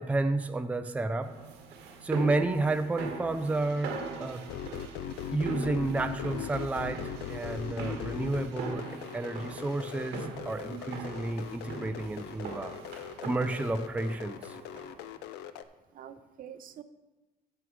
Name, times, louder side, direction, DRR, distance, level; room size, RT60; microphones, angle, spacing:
voice 1, 0.0-1.3 2.0-4.5 5.3-8.9 9.1-12.7 13.2-14.6, right 2 dB, 10° right, 9 dB, 0.4 m, -31 dB
sound 1, 1.2-15.1, right 4 dB, 90° right, 1.6 m, -41 dB
sound 2, 4.5-15.6, left 10 dB, 90° left, 0.5 m, -40 dB
voice 2, 7.7-8.0 10.7-11.1 14.9-15.3 15.9-16.8, right 8 dB, 55° right, 11 dB, 0.6 m, -46 dB
13.0 x 4.6 x 5.1 m, 1.2 s
cardioid pair, 110°, 17 cm